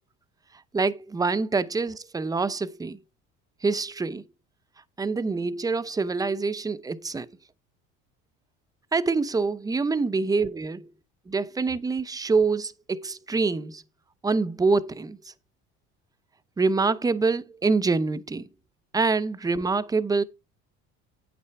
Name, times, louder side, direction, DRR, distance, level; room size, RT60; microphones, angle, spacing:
voice 1, 0.7-3.0 3.6-4.2 5.0-7.3 8.9-10.8 11.3-13.8 14.2-15.2 16.6-18.4 18.9-20.2, right 4 dB, 10° right, 0.6 m, -25 dB
8.8 x 8.5 x 3.4 m
cardioid pair, 115°, 30 cm